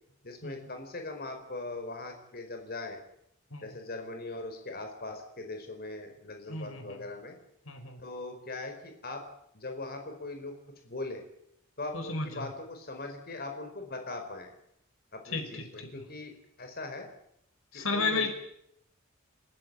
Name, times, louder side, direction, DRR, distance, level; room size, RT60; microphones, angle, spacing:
voice 1, 0.2-3.0 3.6-7.4 8.0-9.2 9.5-10.5 10.8-11.2 11.8-14.5 15.1-16.3 16.6-17.1 17.7-18.3, left 2 dB, 50° left, 5 dB, 4.7 m, -40 dB
voice 2, 6.5-7.0 7.7-8.0 11.9-12.5 15.3-16.0 17.7-18.3, left 3 dB, 80° left, 7 dB, 5.5 m, -34 dB
29.5 x 16.0 x 9.1 m, 0.76 s
head